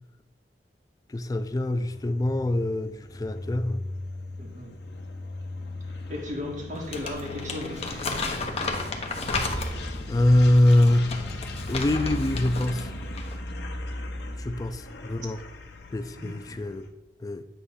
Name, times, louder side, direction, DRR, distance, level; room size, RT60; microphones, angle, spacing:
voice 1, 1.1-3.8 10.1-11.3 11.7-12.9 14.4-15.4 15.9-16.9 17.2-17.4, left 1 dB, 20° left, 0.3 m, -24 dB
sound 1, 1.2-16.9, left 1 dB, 65° left, 0.9 m, -37 dB
voice 2, 4.4-4.8 6.1-8.5 14.2-14.6 16.2-16.6, left 2 dB, 45° right, 1.5 m, -37 dB
Crumpling crinkling, 6.8-10.0 10.6-12.8 13.1-13.4, left 3 dB, 35° left, 0.8 m, -33 dB
8.1 x 3.1 x 5.5 m
head